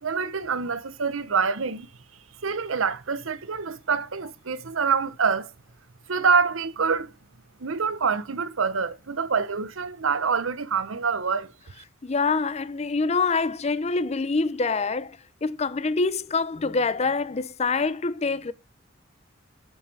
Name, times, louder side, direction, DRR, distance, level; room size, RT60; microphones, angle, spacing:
voice 1, 0.0-1.9 2.4-5.5 6.1-7.1 7.6-11.5, right 5 dB, 90° right, 0.8 m, -26 dB
voice 2, 12.0-18.5, left 4 dB, 35° left, 0.5 m, -25 dB
8.4 x 7.4 x 3.3 m
head